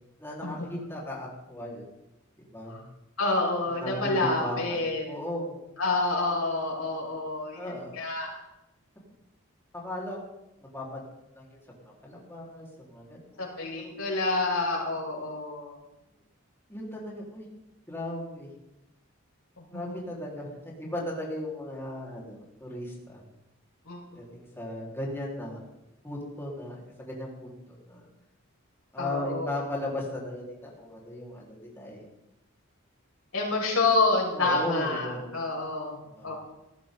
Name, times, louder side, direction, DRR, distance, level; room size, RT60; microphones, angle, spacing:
voice 1, 0.2-1.8 2.5-2.9 3.7-5.6 7.5-7.9 9.7-10.3 10.6-11.0 11.4-11.6 12.0-13.5 13.8-13.9 16.7-17.5 17.9-18.5 19.7-23.2 24.1-25.6 26.0-28.1 28.9-32.0 34.3-35.4 36.2-36.3, left 1 dB, 10° left, -4 dB, 4.5 m, -36 dB
voice 2, 3.2-5.0 5.8-8.4 13.4-15.7 19.6-20.0 23.9-24.0 29.0-29.6 33.3-36.3, left 3 dB, 75° left, -2 dB, 6.1 m, -28 dB
18.5 x 14.5 x 4.0 m, 0.93 s
head